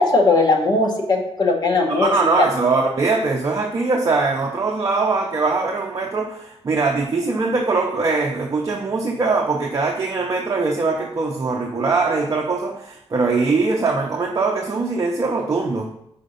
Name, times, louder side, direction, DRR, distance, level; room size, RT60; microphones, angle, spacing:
voice 1, 0.0-2.5, left 3 dB, 45° left, 1 dB, 1.0 m, -18 dB
voice 2, 1.9-15.9, right 3 dB, 35° right, 0 dB, 0.6 m, -21 dB
5.1 x 4.2 x 5.2 m, 0.78 s
wide cardioid pair, 160°, 10 cm